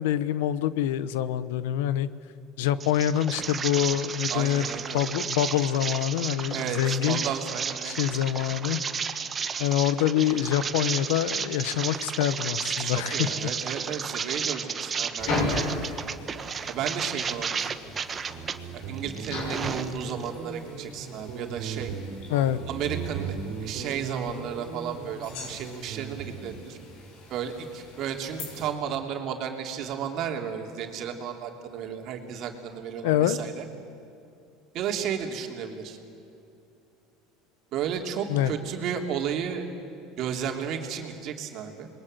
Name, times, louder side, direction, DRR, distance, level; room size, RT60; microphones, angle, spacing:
voice 1, 0.0-2.1 2.6-4.7 4.9-7.2 7.8-8.8 9.6-13.5 22.3-22.6 33.0-33.4 38.3-38.5, left 11 dB, 85° left, 15 dB, 1.0 m, -25 dB
sound 1, 2.8-18.6 19.0-20.3, right 6 dB, 30° right, 1.2 m, -33 dB
voice 2, 4.3-5.0 6.5-8.0 12.8-15.8 16.7-17.7 18.7-21.9 22.7-26.8 27.3-33.7 34.7-36.0 37.7-39.7 40.2-41.9, right 8 dB, 55° right, 3 dB, 3.1 m, -33 dB
grandma cooking, 15.2-28.7, left 2 dB, 65° left, 6.9 m, -37 dB
Guitar, 18.2-26.7, right 6 dB, 75° right, 3.4 m, -38 dB
27.0 x 22.0 x 8.0 m, 2.7 s
supercardioid pair, 110°, 0 cm